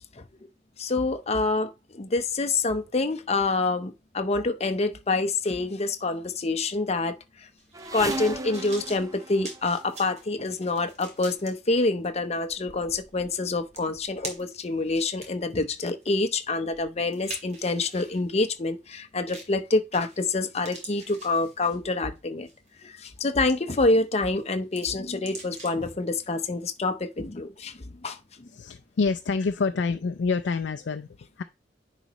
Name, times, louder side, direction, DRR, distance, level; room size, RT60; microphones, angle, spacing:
voice 1, 0.8-7.2 7.9-22.5 22.8-28.5, left 3 dB, 35° left, 0.7 m, -27 dB
sound 1, 7.6-11.5 12.1-12.2 13.3-13.4 13.8-14.6 15.1-18.2 19.3-19.6 19.9-20.3 20.6-21.9 22.5-22.7 23.2-24.1 24.4-25.9 26.2-26.3, right 2 dB, 40° right, 2.4 m, -43 dB
sound 2, 7.7-10.2 11.2-11.4 12.2-12.3 12.5-13.4 13.7-14.2 14.9-15.0 15.4-15.5, right 2 dB, 20° right, 0.5 m, -38 dB
voice 2, 28.5-31.4, left 4 dB, 80° left, 0.4 m, -27 dB
10.0 x 4.1 x 3.0 m
head